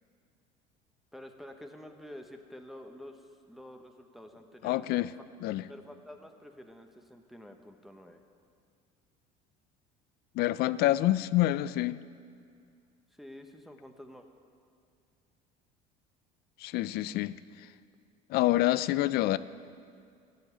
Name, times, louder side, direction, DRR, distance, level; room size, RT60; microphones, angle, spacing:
voice 1, 1.1-5.1 5.4-8.2 13.1-14.3, left 1 dB, ahead, 4 dB, 1.1 m, -49 dB
voice 2, 4.6-5.1 5.4-5.6 10.4-12.0 16.6-17.4 18.3-19.4, left 16 dB, 60° left, 17 dB, 0.5 m, -27 dB
13.5 x 7.7 x 10.0 m, 2.2 s
supercardioid pair, 95°, 18 cm